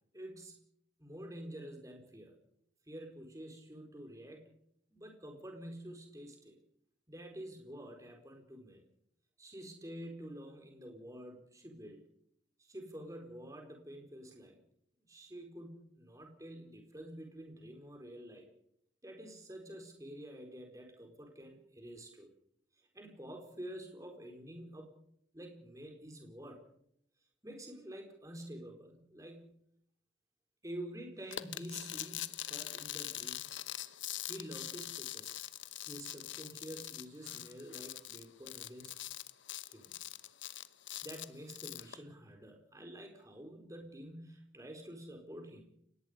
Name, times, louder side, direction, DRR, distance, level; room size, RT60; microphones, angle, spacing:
voice 1, 0.1-0.6 1.0-2.4 2.9-4.5 4.9-6.6 7.1-8.8 9.4-12.0 12.6-14.6 15.1-18.5 19.0-22.3 22.9-25.0 25.3-26.6 27.4-29.6 30.6-33.5 34.3-35.4 35.9-39.0 39.6-40.0 41.0-45.6, right 1 dB, 15° right, 3 dB, 4.4 m, -48 dB
sound 1, 31.3-42.0, left 13 dB, 80° left, 1.0 m, -43 dB
29.5 x 18.0 x 5.2 m, 0.70 s
head